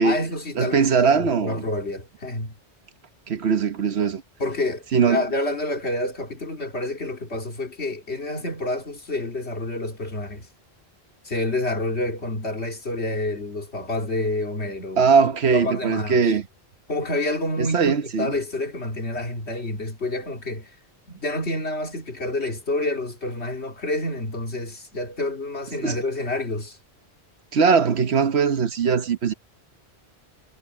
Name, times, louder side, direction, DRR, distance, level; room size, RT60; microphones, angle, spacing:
voice 1, 0.0-2.6 4.4-10.5 11.2-16.3 16.9-20.7 21.1-26.8, left 2 dB, 70° left, 3.1 m, -28 dB
voice 2, 0.6-1.6 3.3-4.2 4.9-5.2 15.0-16.4 17.6-18.3 25.8-26.0 27.5-29.3, right 5 dB, 70° right, 1.3 m, -20 dB
omnidirectional pair, 1.1 m